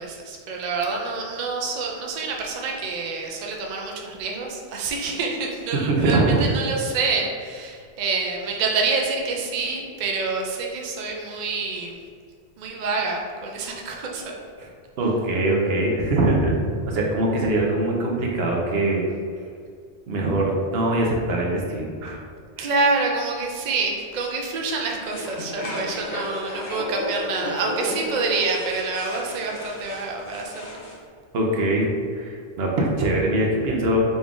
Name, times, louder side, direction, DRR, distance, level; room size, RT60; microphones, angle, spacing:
voice 1, 0.0-12.0 12.6-14.4 22.6-30.9, right 4 dB, 55° right, 0 dB, 0.5 m, -27 dB
voice 2, 5.9-6.4 14.6-14.7 15.0-16.5 16.9-19.0 20.1-22.2 22.6-22.7 31.3-34.0, right 2 dB, 70° right, -2 dB, 0.9 m, -22 dB
sound 1, 25.0-31.0, left 1 dB, 40° left, 0.7 m, -33 dB
3.9 x 2.3 x 3.6 m, 2.1 s
omnidirectional pair, 1.1 m